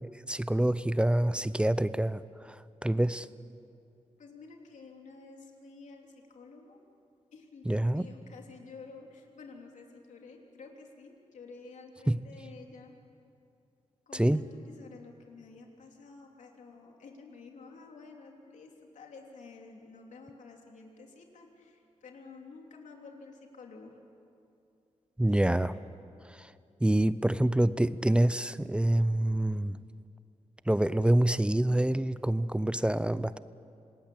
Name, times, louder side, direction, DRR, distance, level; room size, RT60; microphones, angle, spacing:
voice 1, 0.3-3.3 7.7-8.1 12.1-12.2 14.1-14.5 25.2-25.8 26.2-26.5 26.8-29.8 30.7-33.4, right 1 dB, 10° right, 15 dB, 0.6 m, -26 dB
voice 2, 4.2-6.8 7.3-12.9 14.1-24.0 25.3-25.8, left 4 dB, 85° left, 1 dB, 3.3 m, -51 dB
27.0 x 19.5 x 8.6 m, 2.6 s
wide cardioid pair, 100°, 12 cm